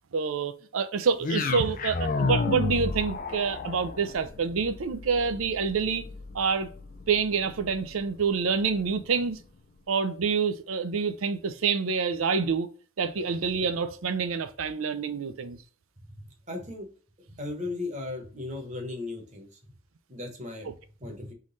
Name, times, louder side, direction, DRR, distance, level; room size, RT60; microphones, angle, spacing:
voice 1, 0.1-6.0 6.3-6.7 7.1-9.4 9.9-12.7 13.0-15.6 20.7-20.8, right 5 dB, 90° right, 0.5 m, -27 dB
sound 1, 1.2-9.4, left 4 dB, 40° left, 0.4 m, -33 dB
voice 2, 16.1-16.9 17.4-19.7 20.1-20.7 21.0-21.3, left 2 dB, 35° right, 1.2 m, -36 dB
3.8 x 3.1 x 3.9 m
head